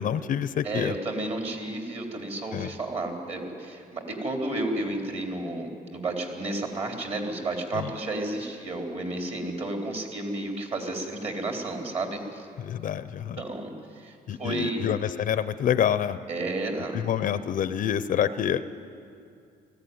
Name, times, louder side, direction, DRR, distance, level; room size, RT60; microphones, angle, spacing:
voice 1, 0.0-0.9 2.5-2.7 7.7-7.9 12.6-13.4 14.3-16.2 16.9-18.6, left 9 dB, 50° left, 13 dB, 0.7 m, -27 dB
voice 2, 0.6-12.5 13.4-14.1 14.4-14.9 16.3-17.0, right 2 dB, 40° right, 2 dB, 3.6 m, -32 dB
19.5 x 15.5 x 9.4 m, 2.4 s
cardioid pair, 110°, 17 cm